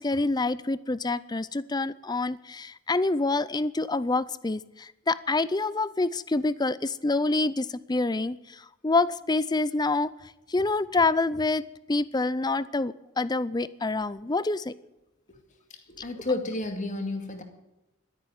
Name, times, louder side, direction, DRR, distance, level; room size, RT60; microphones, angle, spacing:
voice 1, 0.0-10.1 10.5-11.6 11.9-14.7, left 3 dB, 20° left, 17 dB, 0.5 m, -27 dB
voice 2, 15.9-17.4, left 2 dB, 35° left, 5 dB, 2.3 m, -31 dB
12.0 x 10.5 x 9.4 m, 0.93 s
head